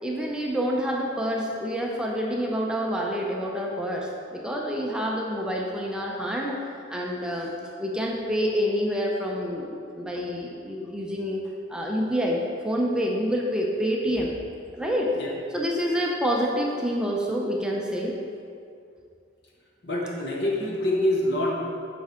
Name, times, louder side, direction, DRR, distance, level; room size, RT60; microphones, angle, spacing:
voice 1, 0.0-6.6 6.9-7.5 7.8-11.4 11.7-14.3 14.7-15.1 15.5-18.2, equal, 5° right, -2 dB, 0.6 m, -27 dB
voice 2, 19.8-21.6, left 1 dB, 60° left, -2 dB, 1.3 m, -26 dB
9.2 x 5.4 x 3.7 m, 2.4 s
head